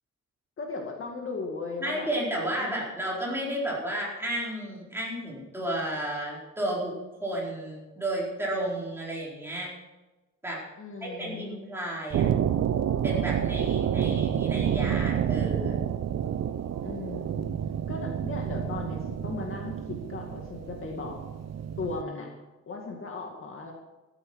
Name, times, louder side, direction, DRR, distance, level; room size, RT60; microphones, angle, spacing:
voice 1, 0.6-2.1 2.6-2.8 10.8-11.5 16.8-17.5 17.9-21.2 21.8-22.3 22.7-23.7, left 3 dB, 45° left, 1 dB, 2.1 m, -37 dB
voice 2, 1.8-6.9 7.2-9.7 10.4-10.6 11.0-12.3 13.0-15.8, right 1 dB, 10° right, -5 dB, 4.4 m, -32 dB
sound 1, 12.1-22.0, right 9 dB, 60° right, 0.6 m, -29 dB
14.0 x 13.0 x 4.8 m, 1.1 s
wide cardioid pair, 170°, 30 cm